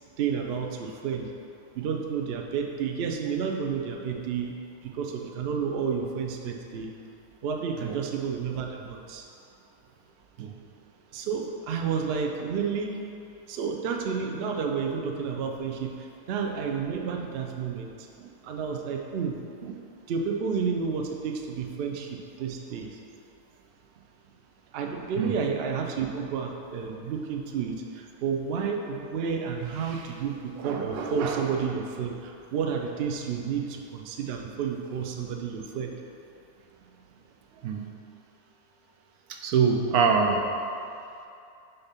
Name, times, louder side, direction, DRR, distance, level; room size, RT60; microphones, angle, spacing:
voice 1, 0.2-1.3 1.7-4.5 4.8-6.9 7.4-9.2 11.1-13.1 13.5-19.4 19.6-23.0 24.7-36.0, right 6 dB, 65° right, 2 dB, 0.6 m, -31 dB
voice 2, 39.3-40.4, right 5 dB, 85° right, 2 dB, 1.1 m, -24 dB
6.6 x 2.8 x 5.7 m, 2.6 s
omnidirectional pair, 1.6 m